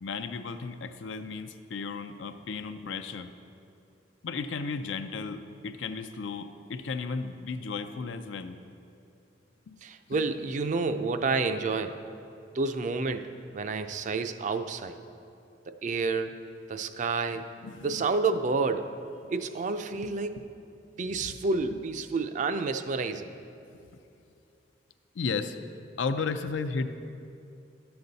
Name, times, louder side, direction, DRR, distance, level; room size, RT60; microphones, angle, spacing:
voice 1, 0.0-3.3 4.2-8.6 9.7-9.8 10.1-10.2 17.6-18.1 19.2-19.3 19.9-20.1 21.0-21.4 21.7-21.8 23.7-23.8 25.1-25.6 26.0-27.0, left 4 dB, 85° left, 9 dB, 0.5 m, -34 dB
voice 2, 9.8-12.0 12.5-15.0 15.7-16.4 16.7-17.5 17.8-18.9 19.3-20.3 21.0-23.3, right 4 dB, 40° right, 9 dB, 0.4 m, -29 dB
11.0 x 6.9 x 4.0 m, 2.6 s
head